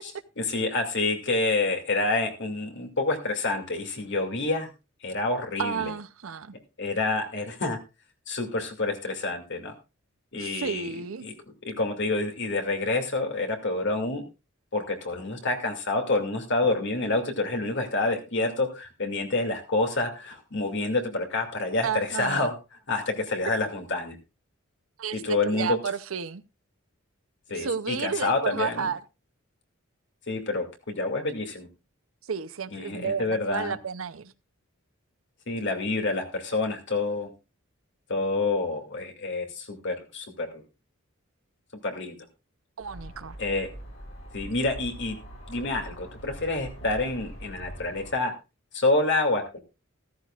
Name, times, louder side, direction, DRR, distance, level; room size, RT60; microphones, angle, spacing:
voice 1, 0.4-4.7 5.0-5.9 6.8-7.8 8.3-9.7 10.3-10.9 11.2-11.3 11.7-14.3 14.7-22.6 22.9-24.2 25.1-25.8 27.5-28.9 30.3-31.7 32.7-33.8 35.5-37.3 38.1-40.6 41.8-42.2 43.4-43.7 44.3-45.2 45.5-48.3 48.7-49.6, left 2 dB, 60° left, 2.5 m, -28 dB
voice 2, 5.6-6.5 10.3-11.3 21.8-22.5 25.0-26.4 27.5-29.0 32.2-34.3 42.8-43.4, right 6 dB, 75° right, 0.7 m, -31 dB
sound 1, 42.8-48.1, right 1 dB, 80° left, 6.8 m, -43 dB
14.0 x 14.0 x 2.4 m
head